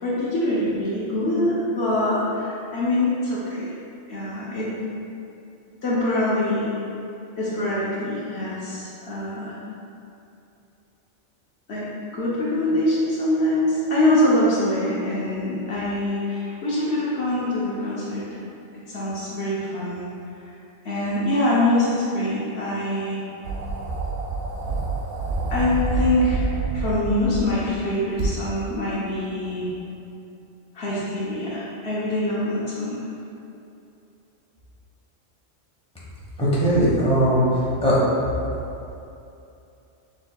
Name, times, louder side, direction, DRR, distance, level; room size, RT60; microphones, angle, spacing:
voice 1, 0.0-3.7 4.1-4.7 5.8-6.7 7.4-9.6 11.7-18.4 18.7-20.1 20.8-23.2 25.5-29.7 30.7-33.0, left 1 dB, 65° left, -8 dB, 1.0 m, -24 dB
sound 1, 23.4-27.6 28.2-28.3, right 3 dB, 80° right, 1.0 m, -27 dB
voice 2, 36.4-38.0, equal, 5° left, -9 dB, 1.1 m, -19 dB
6.6 x 3.2 x 2.3 m, 2.7 s
omnidirectional pair, 1.2 m